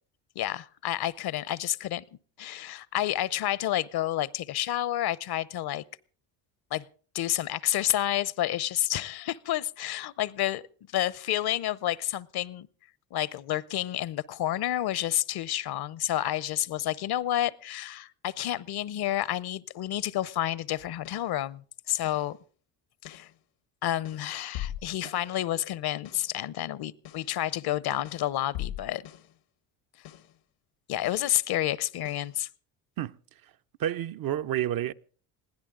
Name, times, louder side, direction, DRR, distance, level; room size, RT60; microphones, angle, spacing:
voice 1, 0.4-2.0 2.4-5.8 6.7-6.9 7.1-10.6 10.9-12.7 13.1-22.4 23.0-23.3 23.8-29.1 30.9-32.5, left 13 dB, 55° left, 0.8 m, -30 dB
sound 1, 20.8-21.4 22.0-22.4 23.0-23.4 24.0-25.4 26.0-26.4 27.0-27.4 28.0-29.4 30.0-30.4 31.0-31.4 32.0-32.4, left 12 dB, 80° left, 1.3 m, -41 dB
voice 2, 33.8-34.9, right 11 dB, 50° right, 0.7 m, -29 dB
21.5 x 16.0 x 3.8 m
supercardioid pair, 70°, 45 cm